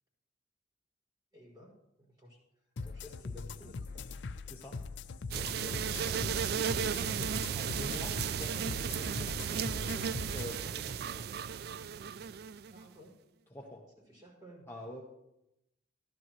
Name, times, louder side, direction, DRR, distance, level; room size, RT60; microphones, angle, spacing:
voice 1, 1.3-1.7 2.0-2.4 2.8-4.0 12.7-13.1 14.1-14.7, left 1 dB, 20° right, -5 dB, 5.7 m, -54 dB
sound 1, 2.8-10.6, left 4 dB, 80° left, 0.5 m, -42 dB
voice 2, 5.2-11.3 13.5-13.8 14.7-15.0, left 1 dB, 15° left, -3 dB, 1.0 m, -46 dB
sound 2, 5.3-12.9, right 7 dB, 55° right, 0.3 m, -35 dB
15.0 x 12.5 x 3.1 m, 0.88 s
head